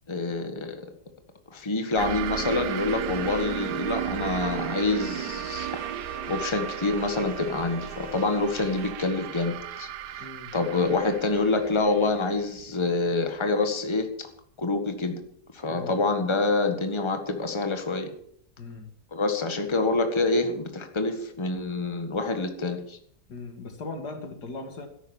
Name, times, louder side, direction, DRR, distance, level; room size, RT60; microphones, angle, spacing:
voice 1, 0.1-0.8 1.5-5.8 6.3-10.3 10.5-14.3 14.6-15.2 15.5-18.1 19.1-23.0, left 3 dB, 20° left, 6 dB, 1.6 m, -27 dB
sound 1, 2.0-13.2, right 11 dB, 85° right, 1.4 m, -35 dB
sound 2, 2.7-10.8, right 1 dB, 45° right, 3.7 m, -45 dB
voice 2, 10.2-10.5 15.7-16.0 18.6-18.9 23.3-24.9, left 3 dB, 80° left, 6 dB, 2.6 m, -38 dB
13.0 x 11.0 x 7.1 m, 0.68 s
omnidirectional pair, 1.7 m